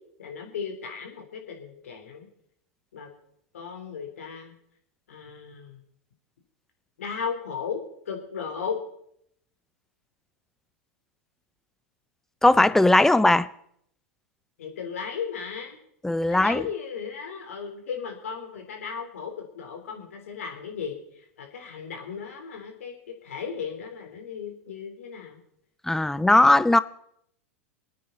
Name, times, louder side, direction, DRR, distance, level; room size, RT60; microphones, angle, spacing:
voice 1, 0.2-2.3 2.9-3.1 3.5-4.5 5.1-5.8 7.0-7.8 8.1-8.8 14.6-15.8 16.3-21.0 21.4-22.9 23.2-25.4 26.2-26.4, left 6 dB, 80° left, 3.9 m, -35 dB
voice 2, 12.4-13.5 16.0-16.7 25.9-26.8, left 2 dB, 5° left, 0.5 m, -18 dB
27.5 x 9.5 x 4.1 m
hypercardioid pair, 110°, 8 cm